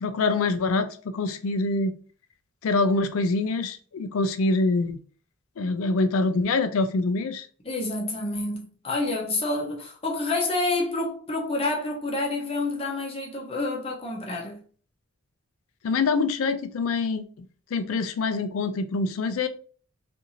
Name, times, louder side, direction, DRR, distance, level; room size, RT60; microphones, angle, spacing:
voice 1, 0.0-1.9 2.6-5.0 5.6-7.5 15.8-17.2 17.7-19.5, left 3 dB, 70° left, 0.4 m, -25 dB
voice 2, 7.6-14.6, left 2 dB, 25° left, 0.6 m, -28 dB
2.6 x 2.5 x 2.8 m
head